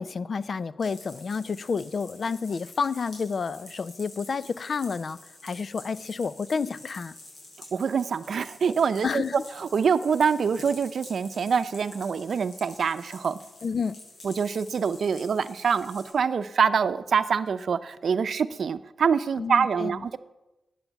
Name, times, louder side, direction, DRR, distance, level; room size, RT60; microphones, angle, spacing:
voice 1, 0.0-7.1 9.0-9.4 13.6-14.0 19.4-20.0, left 5 dB, 55° left, 17 dB, 0.5 m, -30 dB
sound 1, 0.8-16.1, left 2 dB, 75° left, 6.3 m, -48 dB
voice 2, 7.7-9.2 9.6-13.4 14.2-20.2, right 6 dB, 70° right, 12 dB, 0.6 m, -25 dB
12.0 x 9.2 x 8.0 m, 1.0 s
wide cardioid pair, 95°, 0 cm